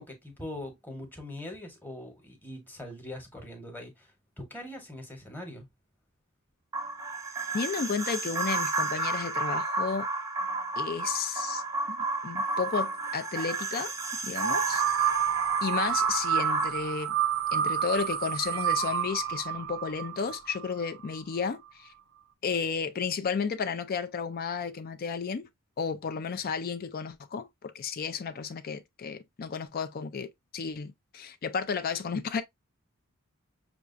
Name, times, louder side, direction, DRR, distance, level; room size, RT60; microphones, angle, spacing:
voice 1, 0.0-4.1 4.4-5.7, left 1 dB, 10° left, 1.0 m, -42 dB
sound 1, 6.7-16.7, right 3 dB, 15° right, 0.6 m, -32 dB
voice 2, 7.5-10.1 10.8-11.6 11.9-12.0 12.2-13.9 14.2-14.8 15.6-17.2 17.5-21.9 22.4-25.5 25.8-32.4, left 5 dB, 45° left, 0.4 m, -33 dB
sound 2, 14.4-21.2, right 9 dB, 60° right, 0.5 m, -29 dB
6.0 x 2.4 x 2.5 m
head